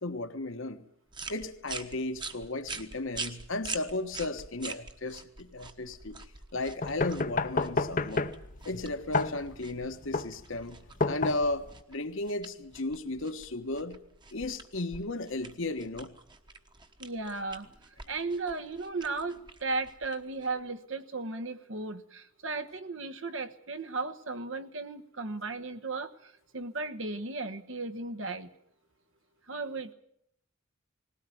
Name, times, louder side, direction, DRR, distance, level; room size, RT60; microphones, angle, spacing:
voice 1, 0.0-0.8 1.3-6.2 6.5-8.4 8.6-10.8 11.1-14.0 14.3-16.1, left 2 dB, 65° left, 1.4 m, -35 dB
sound 1, 1.1-20.7, right 4 dB, 20° right, 1.2 m, -45 dB
sound 2, 6.8-11.8, left 3 dB, 40° left, 0.8 m, -31 dB
voice 2, 17.0-17.7 18.1-28.5 29.5-29.9, right 3 dB, 65° right, 1.2 m, -35 dB
20.0 x 17.0 x 9.3 m
head